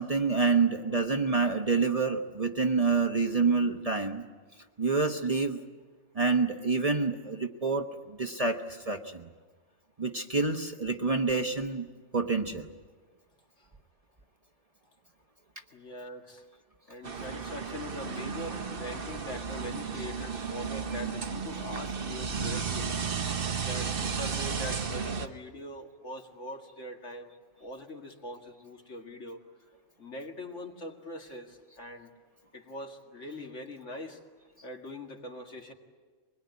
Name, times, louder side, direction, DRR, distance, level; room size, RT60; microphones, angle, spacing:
voice 1, 0.0-4.2 4.8-5.6 6.1-9.3 10.0-11.9 12.1-12.7, right 4 dB, 30° right, 5 dB, 1.0 m, -27 dB
voice 2, 15.7-16.4 16.9-23.0 23.5-27.3 27.6-29.4 30.0-32.1 32.5-34.2 34.6-35.7, left 1 dB, 70° left, 2 dB, 2.5 m, -42 dB
sound 1, 17.0-25.3, right 5 dB, 50° right, 1.2 m, -34 dB
24.0 x 21.0 x 9.5 m, 1.4 s
omnidirectional pair, 1.3 m